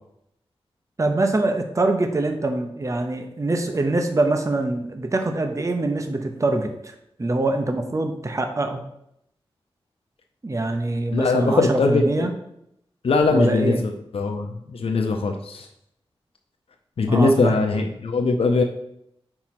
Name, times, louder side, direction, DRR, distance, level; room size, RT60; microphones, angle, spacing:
voice 1, 1.0-6.9 7.2-8.8 10.4-12.3 13.3-13.8 17.1-17.7, right 2 dB, 30° right, 5 dB, 0.7 m, -24 dB
voice 2, 11.1-12.3 13.0-15.7 17.0-18.6, left 3 dB, 70° left, 4 dB, 0.6 m, -21 dB
4.5 x 4.3 x 5.8 m, 0.77 s
wide cardioid pair, 70°, 10 cm